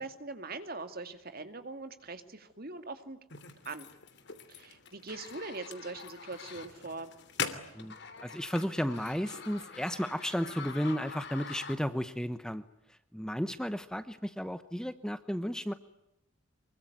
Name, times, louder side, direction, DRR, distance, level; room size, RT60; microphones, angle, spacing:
voice 1, 0.0-3.2 3.6-3.9 4.5-7.1, right 3 dB, 45° right, 9 dB, 2.4 m, -42 dB
sound 1, 3.3-12.1, left 6 dB, 55° left, 2.9 m, -43 dB
voice 2, 8.2-12.6 12.9-15.7, equal, 5° left, 11 dB, 0.9 m, -33 dB
25.5 x 23.5 x 9.4 m, 0.87 s
head